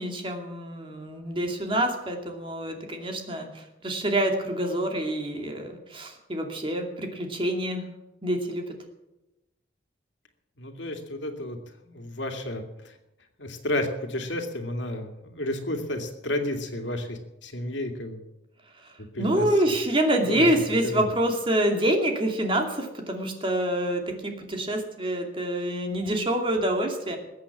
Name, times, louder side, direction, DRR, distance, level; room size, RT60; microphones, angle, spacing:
voice 1, 0.0-7.9 8.2-8.7 18.8-18.9 19.2-27.2, right 1 dB, 30° right, 3 dB, 2.7 m, -26 dB
voice 2, 10.6-11.6 11.8-13.0 13.4-18.3 19.0-19.5 20.2-20.5 20.8-21.1, left 1 dB, 80° left, 5 dB, 2.5 m, -32 dB
21.0 x 8.5 x 7.3 m, 0.94 s
head